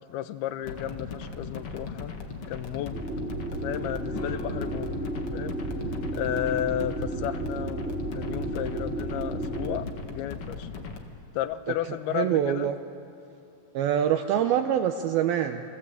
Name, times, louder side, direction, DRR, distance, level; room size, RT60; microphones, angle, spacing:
voice 1, 0.1-2.1 2.5-3.0 3.5-5.6 6.1-10.7 11.3-12.7, left 12 dB, 80° left, 11 dB, 2.8 m, -33 dB
sound 1, 0.6-11.0, left 4 dB, 45° left, 2.1 m, -38 dB
sound 2, 2.9-9.8, right 2 dB, 15° left, 3.5 m, -33 dB
sound 3, 4.1-9.3, left 7 dB, 65° left, 2.5 m, -46 dB
voice 2, 12.1-12.8 13.7-15.6, right 10 dB, 75° right, 5 dB, 2.5 m, -25 dB
29.5 x 24.0 x 8.4 m, 2.5 s
omnidirectional pair, 4.7 m